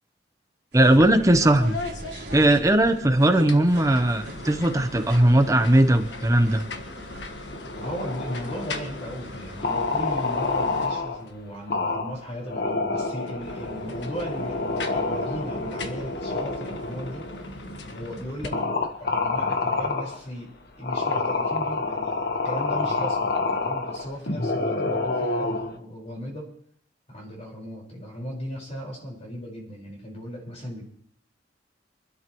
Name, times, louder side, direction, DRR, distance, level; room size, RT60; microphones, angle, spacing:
voice 1, 0.7-1.8 2.3-6.6, right 1 dB, 20° right, 8 dB, 0.9 m, -19 dB
sound 1, 0.7-7.5, right 2 dB, 85° right, 3.0 m, -42 dB
sound 2, 1.0-1.2 1.4-3.0 3.4-11.4 13.2-18.5, left 2 dB, 85° left, 1.5 m, -38 dB
sound 3, 7.5-9.1 9.6-11.2 11.7-12.2 12.4-17.4 18.0-18.1 18.5-20.2 20.8-25.7, left 3 dB, 60° left, 1.2 m, -28 dB
voice 2, 7.7-17.6 17.9-18.6 19.0-23.3 23.6-26.5 27.1-30.8, equal, 40° left, -2 dB, 5.0 m, -36 dB
25.5 x 12.5 x 3.1 m, 0.62 s
head